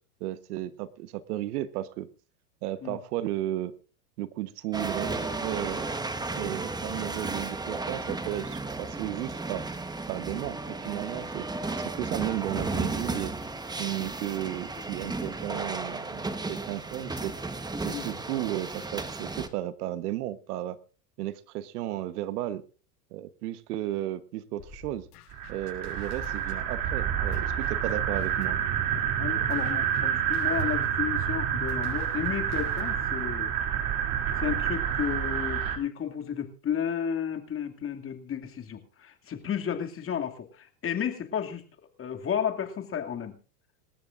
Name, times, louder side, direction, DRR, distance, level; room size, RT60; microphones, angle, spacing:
voice 1, 0.2-2.1 2.6-3.7 4.2-5.9 6.3-9.6 10.1-11.5 11.8-13.3 13.8-17.3 17.8-20.8 21.2-22.6 23.1-25.1 25.5-28.6, right 14 dB, 70° right, 13 dB, 1.3 m, -34 dB
sound 1, 4.7-19.5, right 3 dB, 10° right, 1.2 m, -34 dB
sound 2, 24.6-28.6 29.0-33.3, left 5 dB, 65° left, 7.6 m, -50 dB
sound 3, 25.3-35.8, right 9 dB, 45° right, 3.1 m, -28 dB
voice 2, 29.2-33.5 34.4-41.6 42.0-43.4, left 8 dB, 25° left, 6 dB, 2.5 m, -33 dB
27.0 x 13.5 x 2.6 m, 0.37 s
hypercardioid pair, 110°, 47 cm